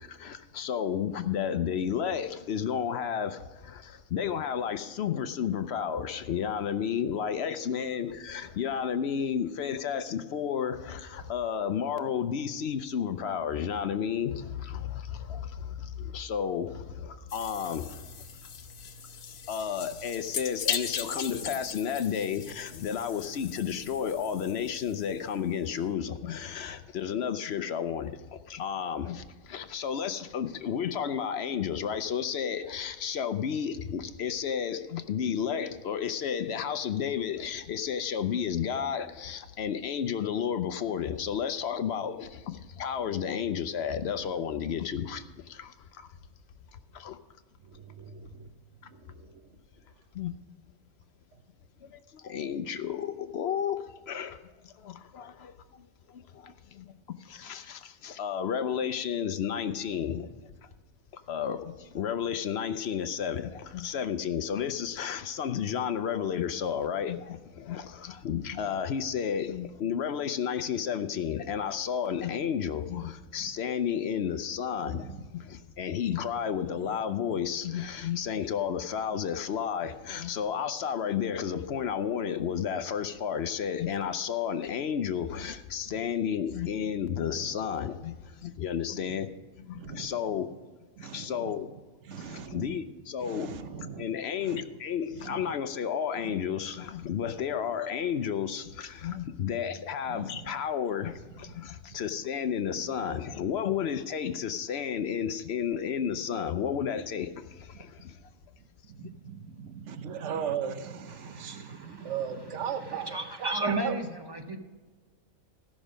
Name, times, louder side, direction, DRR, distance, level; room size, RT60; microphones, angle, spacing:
voice 1, 0.0-18.1 19.2-46.1 46.9-47.2 50.1-50.3 51.8-56.9 57.2-60.3 60.6-60.7 61.1-90.5 91.0-91.7 92.2-93.6 94.0-108.2 109.0-109.1, left 8 dB, 60° left, 11 dB, 0.8 m, -32 dB
sound 1, 17.3-25.4, left 7 dB, 80° left, 1.3 m, -38 dB
voice 2, 47.7-48.5 49.2-49.4 74.9-75.2 77.3-77.4 87.3-87.5 89.7-90.1 91.0-91.5 92.1-92.8 93.2-94.0 94.4-94.6 95.3-95.5 96.3-96.4 100.1-100.4 107.7-107.8 108.9-113.9, right 8 dB, 60° right, 9 dB, 1.1 m, -38 dB
voice 3, 111.2-112.1 112.9-114.6, right 2 dB, 20° right, 4 dB, 0.8 m, -34 dB
16.0 x 6.2 x 5.0 m, 1.3 s
omnidirectional pair, 1.4 m